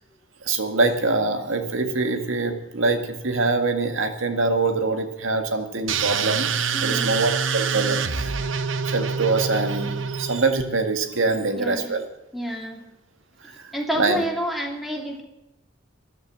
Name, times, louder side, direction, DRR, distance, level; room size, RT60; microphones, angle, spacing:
voice 1, 0.5-6.5 6.8-8.4 8.8-12.0 13.6-14.2, right 3 dB, 90° right, 6 dB, 1.9 m, -24 dB
sound 1, 5.9-10.6, right 6 dB, 70° right, 0.9 m, -26 dB
voice 2, 6.7-7.1 11.4-11.9 12.3-12.8 13.7-15.2, equal, ahead, 0 dB, 2.9 m, -29 dB
13.5 x 11.0 x 7.5 m, 0.88 s
head